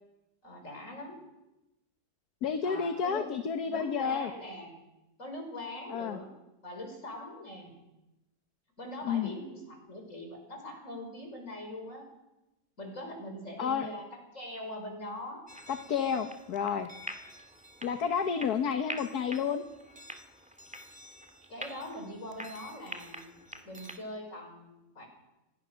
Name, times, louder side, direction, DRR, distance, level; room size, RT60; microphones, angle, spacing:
voice 1, 0.4-1.2 2.6-3.3 3.7-4.7 5.2-6.3 6.6-7.8 8.8-12.1 12.8-15.4 21.5-23.4 23.6-25.1, left 1 dB, 45° left, 3 dB, 5.9 m, -42 dB
voice 2, 2.4-4.3 5.9-6.2 9.0-9.3 13.6-13.9 15.7-16.9 17.8-19.6, left 7 dB, 65° left, 7 dB, 1.6 m, -30 dB
sound 1, 15.5-24.0, equal, 5° right, 1.9 m, -46 dB
27.0 x 19.5 x 6.4 m, 0.97 s
omnidirectional pair, 1.9 m